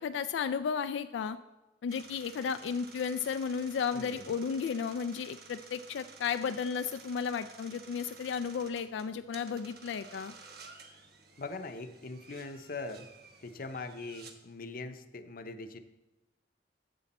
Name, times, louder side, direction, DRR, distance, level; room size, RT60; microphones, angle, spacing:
voice 1, 0.0-1.4 1.8-10.3, left 6 dB, 90° left, 10 dB, 0.3 m, -34 dB
sound 1, 1.9-14.3, right 5 dB, 60° right, 1.1 m, -53 dB
voice 2, 3.9-4.3 11.4-13.1 13.4-15.8, left 3 dB, 55° left, 8 dB, 0.7 m, -41 dB
11.5 x 7.7 x 4.2 m, 1.0 s
head